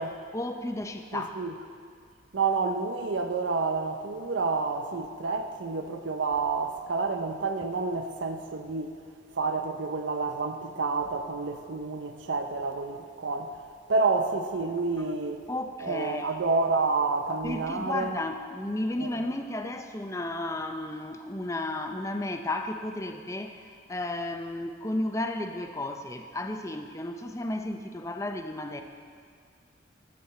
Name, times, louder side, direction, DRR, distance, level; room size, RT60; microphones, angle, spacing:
voice 1, 0.3-1.4 15.5-16.3 17.4-28.8, left 1 dB, 15° left, 6 dB, 0.5 m, -33 dB
voice 2, 1.1-1.5 2.3-8.9 9.3-13.6 13.9-15.4 15.8-18.2 19.0-19.3, right 4 dB, 90° right, 7 dB, 0.6 m, -29 dB
12.5 x 7.6 x 4.2 m, 2.1 s
head